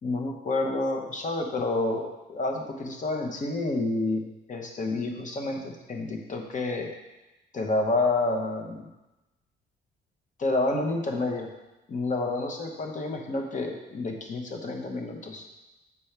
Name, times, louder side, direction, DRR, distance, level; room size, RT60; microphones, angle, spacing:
voice 1, 0.0-4.2 4.5-6.9 7.5-8.8 10.4-11.5 11.9-15.4, left 2 dB, 40° left, 2 dB, 1.0 m, -29 dB
7.0 x 4.4 x 3.3 m, 1.0 s
cardioid pair, 90°, 20 cm